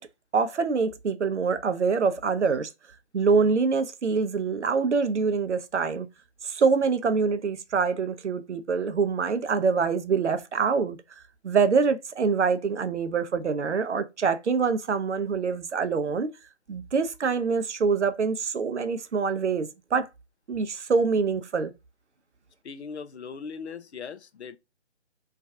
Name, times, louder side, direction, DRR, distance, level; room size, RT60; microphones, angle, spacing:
voice 1, 0.3-2.7 3.1-6.1 6.4-11.0 11.4-16.3 16.7-20.1 20.5-21.7, right 5 dB, 80° right, 0.5 m, -25 dB
voice 2, 22.6-24.6, left 5 dB, 70° left, 0.5 m, -39 dB
2.4 x 2.3 x 2.5 m
figure-of-eight pair, 145°, 34 cm